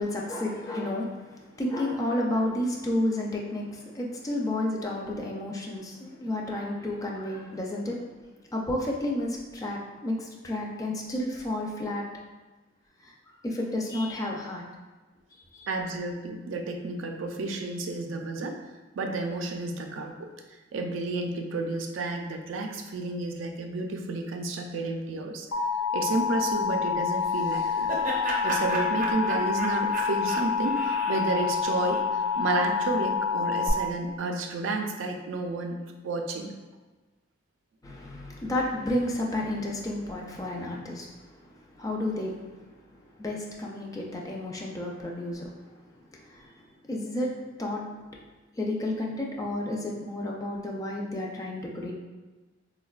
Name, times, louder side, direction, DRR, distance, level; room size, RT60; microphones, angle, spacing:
voice 1, 0.0-8.0 8.5-12.0 13.0-13.1 13.4-14.6 15.5-15.7 37.8-42.6 42.9-45.5 46.1-47.8 48.6-51.9, left 1 dB, 20° left, -2 dB, 0.3 m, -31 dB
voice 2, 15.7-18.6 19.0-20.3 20.7-25.5 25.9-27.9 28.4-36.5, right 2 dB, 90° right, 3 dB, 0.4 m, -31 dB
Alarm, 25.5-33.7, left 6 dB, 80° left, 0.5 m, -28 dB
Laughter, 27.2-32.4, right 2 dB, 45° right, 0.6 m, -34 dB
3.9 x 2.1 x 2.3 m, 1.3 s
head